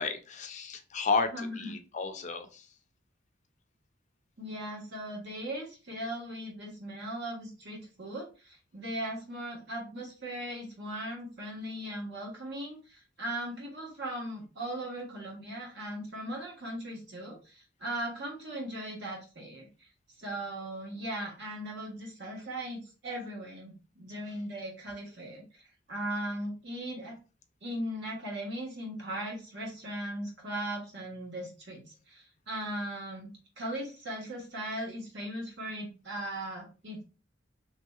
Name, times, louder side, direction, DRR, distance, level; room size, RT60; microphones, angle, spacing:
voice 1, 0.0-2.7, left 4 dB, 40° left, 6 dB, 0.4 m, -32 dB
voice 2, 1.3-1.7 4.4-19.7 20.2-25.6 25.9-27.2 27.6-37.0, right 1 dB, 60° right, -2 dB, 1.3 m, -38 dB
3.2 x 2.7 x 2.3 m, 0.33 s
head